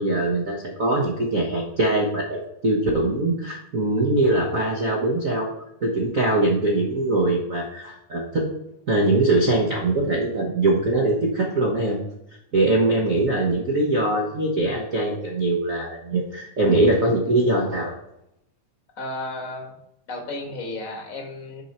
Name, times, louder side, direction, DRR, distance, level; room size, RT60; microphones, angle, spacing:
voice 1, 0.0-5.5 5.8-8.5 8.9-12.0 12.5-18.0, right 2 dB, 75° right, -1 dB, 0.7 m, -22 dB
voice 2, 19.0-19.8 20.1-21.6, left 2 dB, 40° left, 2 dB, 1.3 m, -33 dB
11.0 x 4.6 x 4.3 m, 0.80 s
omnidirectional pair, 3.4 m